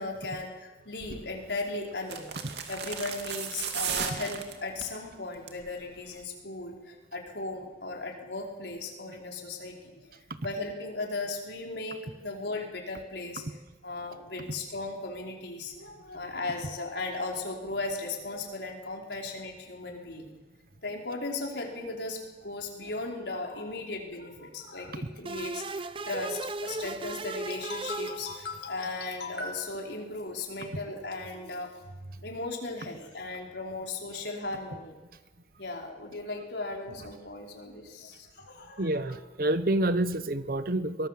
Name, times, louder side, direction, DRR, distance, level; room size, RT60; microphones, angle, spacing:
voice 1, 0.0-2.3 2.7-10.1 10.4-13.4 13.8-20.3 20.8-31.7 32.2-34.9 35.6-39.2, left 3 dB, 80° left, 0 dB, 4.8 m, -37 dB
sound 1, 1.0-1.3 2.0-5.0 5.3-5.7 6.0-6.1, right 7 dB, 75° right, 2.5 m, -35 dB
sound 2, 25.3-28.8, right 3 dB, 30° right, 0.7 m, -36 dB
voice 2, 38.8-41.1, right 1 dB, 55° right, 13 dB, 1.1 m, -28 dB
24.0 x 19.0 x 7.7 m, 1.2 s
head